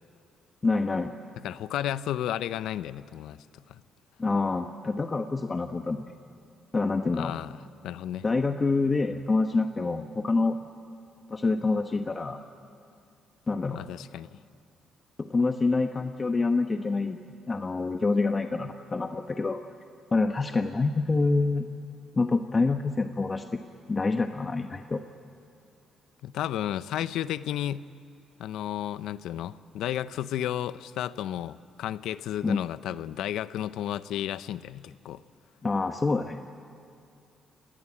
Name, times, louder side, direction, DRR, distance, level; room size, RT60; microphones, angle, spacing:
voice 1, 0.6-1.1 4.2-6.0 6.7-7.3 8.2-10.6 11.3-12.4 13.5-13.8 15.2-17.2 17.5-19.6 20.1-21.7 22.1-23.6 23.9-25.0 32.4-32.6 35.6-36.5, left 3 dB, 30° left, 6 dB, 1.0 m, -26 dB
voice 2, 1.4-3.8 7.1-7.6 7.8-8.2 13.7-14.3 26.2-27.9 28.4-35.2, left 11 dB, 85° left, 15 dB, 0.6 m, -33 dB
29.5 x 19.0 x 8.6 m, 2.5 s
cardioid pair, 90°, 0 cm